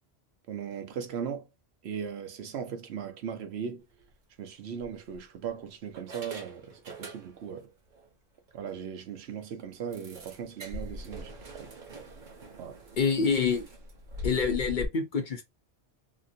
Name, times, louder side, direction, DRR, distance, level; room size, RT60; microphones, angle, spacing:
voice 1, 0.5-1.5 1.8-3.9 4.4-7.7 8.5-11.7 12.6-12.8, right 7 dB, 80° right, 0.9 m, -38 dB
sound 1, 3.9-4.1 4.8-5.5 6.0-7.6 7.9-8.1 8.5-8.6 8.9-9.0 9.9-14.9, left 1 dB, 50° right, 0.9 m, -42 dB
voice 2, 13.0-13.7 14.2-15.4, left 5 dB, 50° left, 0.8 m, -26 dB
2.9 x 2.5 x 2.6 m
omnidirectional pair, 1.1 m